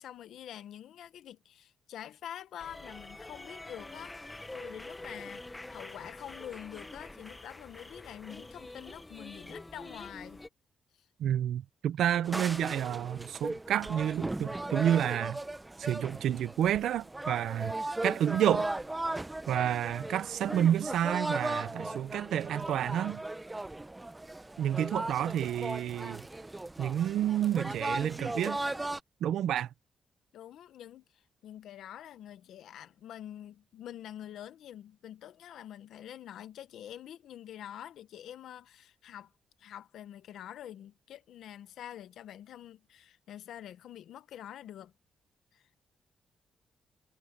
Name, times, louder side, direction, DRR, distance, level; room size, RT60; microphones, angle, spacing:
voice 1, 0.0-10.4 11.0-11.1 24.8-24.9 25.2-25.4 30.3-39.3 39.6-44.9 45.5-45.6, left 11 dB, 85° left, 1.0 m, -46 dB
sound 1, 2.6-10.5, left 2 dB, 10° left, 1.0 m, -46 dB
voice 2, 11.2-15.4 15.8-18.7 19.5-23.2 24.6-26.2 26.8-28.6 29.2-29.7, right 10 dB, 80° right, 0.6 m, -30 dB
sound 2, 12.2-29.0, right 2 dB, 10° right, 0.6 m, -37 dB
wide cardioid pair, 165°, 0 cm